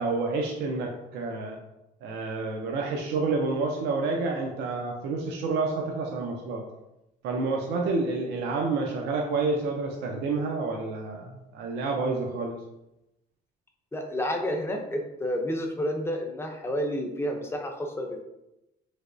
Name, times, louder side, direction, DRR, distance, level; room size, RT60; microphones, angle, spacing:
voice 1, 0.0-1.6 2.0-6.6 7.2-12.6, right 3 dB, 80° right, 0 dB, 0.5 m, -29 dB
voice 2, 13.9-18.2, equal, 15° left, 3 dB, 0.5 m, -30 dB
3.3 x 2.9 x 2.5 m, 0.90 s
cardioid pair, 110°, 17 cm